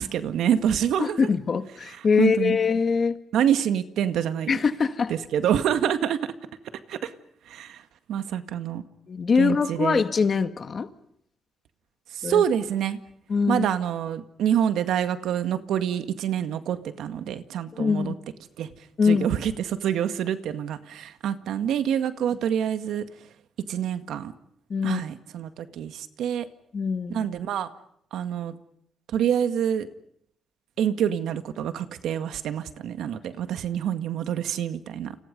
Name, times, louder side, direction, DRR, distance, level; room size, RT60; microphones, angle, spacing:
voice 1, 0.0-1.3 2.2-2.6 3.3-4.6 5.1-6.2 6.9-7.1 7.5-7.8 8.1-8.8 9.4-10.0 12.1-13.0 13.5-18.1 18.6-18.7 19.1-23.0 23.7-24.3 24.8-26.5 27.1-27.7 28.1-28.5 29.1-29.9 30.8-35.2, right 9 dB, 80° right, 1.9 m, -26 dB
voice 2, 1.0-3.2 4.5-5.1 9.1-10.9 12.2-12.4 13.3-13.6 17.7-18.1 19.0-19.3 24.7-25.0 26.7-27.3, left 5 dB, 35° left, 1.8 m, -23 dB
29.5 x 29.5 x 5.4 m
cardioid pair, 135°, 0 cm